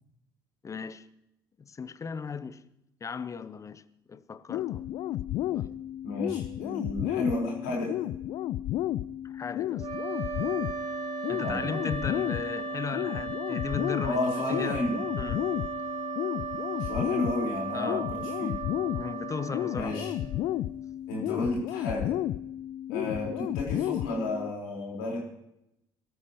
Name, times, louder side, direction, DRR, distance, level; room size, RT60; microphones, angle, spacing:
voice 1, 0.6-1.1 1.6-2.6 3.0-4.9 5.5-5.8 9.2-9.9 11.3-14.8 15.2-15.5 17.7-18.1 18.9-20.5 23.0-23.1, left 5 dB, 25° left, 0.8 m, -37 dB
sound 1, 4.5-24.5, left 13 dB, 50° left, 0.4 m, -32 dB
voice 2, 6.0-8.0 11.4-11.7 14.0-15.0 16.8-18.6 19.7-20.1 21.1-22.2 22.9-25.2, left 2 dB, 65° left, 4.8 m, -32 dB
sound 2, 9.8-20.7, right 7 dB, 35° right, 2.9 m, -37 dB
22.5 x 13.0 x 3.2 m
figure-of-eight pair, 55°, 12 cm